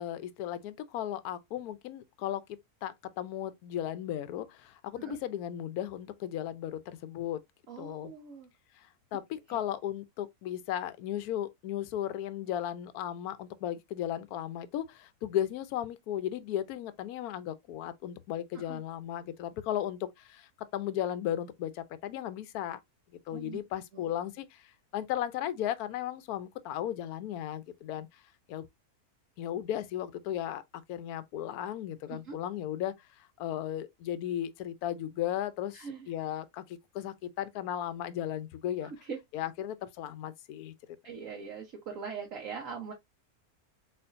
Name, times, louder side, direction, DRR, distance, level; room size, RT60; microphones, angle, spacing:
voice 1, 0.0-2.4 2.8-7.4 7.8-8.1 8.8-22.8 23.3-28.1 28.5-28.6 29.4-30.6 30.9-38.9 39.3-40.7, left 11 dB, 75° left, 1.1 m, -35 dB
voice 2, 7.7-8.5 9.5-9.6 18.5-18.8 23.3-23.6 32.1-32.4 35.7-36.1 39.0-39.2 41.0-42.9, right 6 dB, 60° right, 1.3 m, -41 dB
4.4 x 4.0 x 2.5 m
omnidirectional pair, 1.6 m